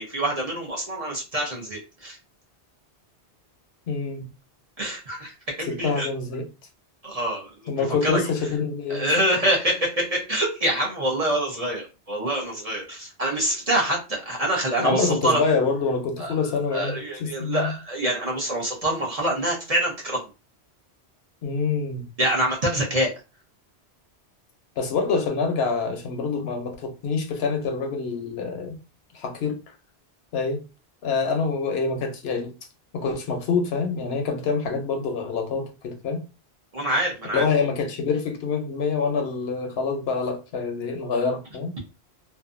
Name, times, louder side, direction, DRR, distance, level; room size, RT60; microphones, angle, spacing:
voice 1, 0.0-2.2 4.8-6.1 7.0-8.3 8.9-15.4 16.2-16.3 16.7-20.3 22.2-23.1 36.7-37.7, right 1 dB, 40° right, 0.7 m, -26 dB
voice 2, 3.9-4.3 5.7-6.5 7.7-9.1 14.8-17.7 21.4-22.0 24.8-28.8 29.1-29.6 30.3-30.6 31.0-32.5 32.9-36.2 37.3-41.7, left 4 dB, 70° left, 0.8 m, -26 dB
2.6 x 2.2 x 2.5 m
omnidirectional pair, 1.1 m